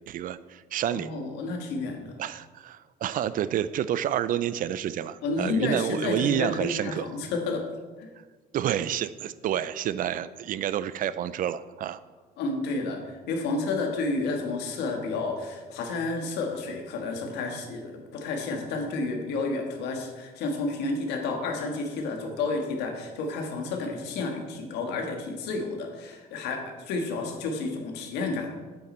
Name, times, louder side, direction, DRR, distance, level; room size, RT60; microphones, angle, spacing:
voice 1, 0.1-1.1 2.2-7.1 8.5-12.0, right 10 dB, 55° right, 15 dB, 0.4 m, -29 dB
voice 2, 0.9-2.1 5.2-7.6 8.0-8.1 12.4-28.5, left 3 dB, 90° left, 3 dB, 1.6 m, -31 dB
8.8 x 7.9 x 4.3 m, 1.4 s
cardioid pair, 110°, 17 cm